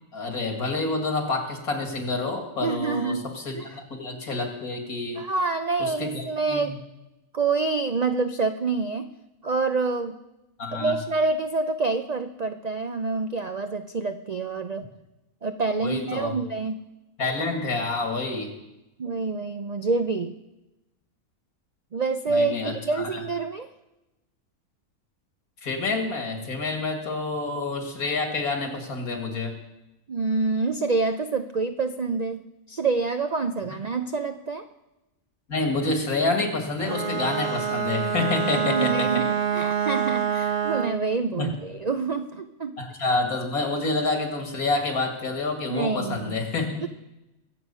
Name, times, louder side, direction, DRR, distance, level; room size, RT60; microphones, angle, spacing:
voice 1, 0.1-5.2 5.8-6.8 10.6-11.0 15.8-16.3 17.2-18.5 22.3-22.7 23.1-23.2 25.6-29.5 35.5-39.1 41.4-41.5 42.8-46.9, left 3 dB, 80° left, 3 dB, 2.6 m, -28 dB
voice 2, 2.6-3.3 3.5-3.7 5.2-6.7 7.3-9.1 9.4-10.2 10.7-14.9 15.4-16.8 19.0-20.3 21.9-23.7 30.1-32.4 32.7-34.6 38.5-42.8 45.7-46.4 46.8-46.9, right 4 dB, 75° right, 8 dB, 0.3 m, -27 dB
Bowed string instrument, 36.8-41.1, right 7 dB, 50° right, 1.0 m, -26 dB
23.0 x 8.0 x 5.5 m, 0.97 s
omnidirectional pair, 1.5 m